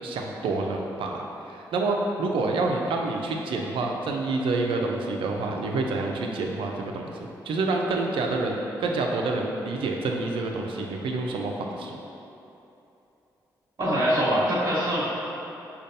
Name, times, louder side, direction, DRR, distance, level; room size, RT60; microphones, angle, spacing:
voice 1, 0.0-7.2 7.5-12.0, right 3 dB, 75° right, 1 dB, 0.4 m, -28 dB
voice 2, 13.8-15.1, equal, 40° right, -9 dB, 1.0 m, -23 dB
5.0 x 2.3 x 2.6 m, 2.9 s
supercardioid pair, 50°, 9 cm